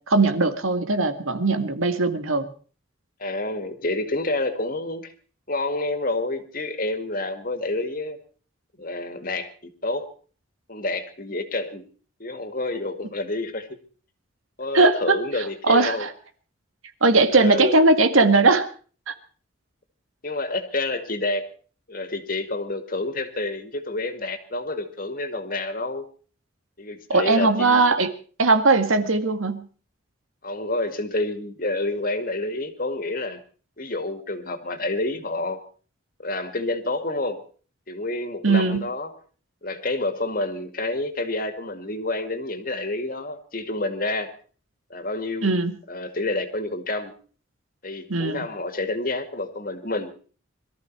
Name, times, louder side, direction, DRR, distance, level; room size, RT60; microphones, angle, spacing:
voice 1, 0.1-2.5 14.7-16.1 17.0-18.7 19.1-19.2 27.1-28.1 28.4-29.7 38.4-38.9 45.4-45.7 48.1-48.4, right 3 dB, 90° right, 9 dB, 2.0 m, -19 dB
voice 2, 3.2-5.1 5.5-8.2 8.8-10.1 10.7-11.8 12.2-13.7 14.6-16.1 17.3-17.8 20.2-21.4 21.9-26.1 26.8-27.8 30.4-33.4 33.8-35.6 36.2-37.4 37.9-39.1 39.6-44.3 44.9-45.6 45.9-47.1 47.8-50.1, left 2 dB, 45° left, 9 dB, 2.1 m, -28 dB
23.0 x 14.0 x 4.6 m, 0.41 s
head